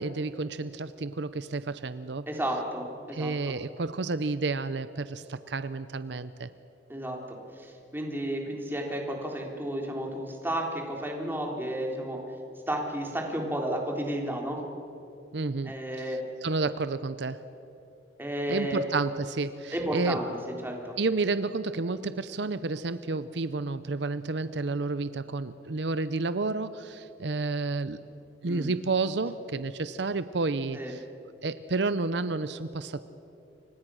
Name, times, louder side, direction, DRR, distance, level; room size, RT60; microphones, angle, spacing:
voice 1, 0.0-2.3 3.1-6.5 15.3-17.4 18.5-20.2 21.0-28.0 28.4-31.0 31.4-33.0, right 3 dB, 70° right, 13 dB, 0.7 m, -31 dB
voice 2, 2.3-3.6 6.9-12.2 12.7-14.6 15.7-16.2 18.2-18.8 19.7-20.3 20.6-21.0 28.4-28.7 30.7-30.9, right 1 dB, 10° right, 1 dB, 3.7 m, -32 dB
29.0 x 25.5 x 6.3 m, 2.9 s
head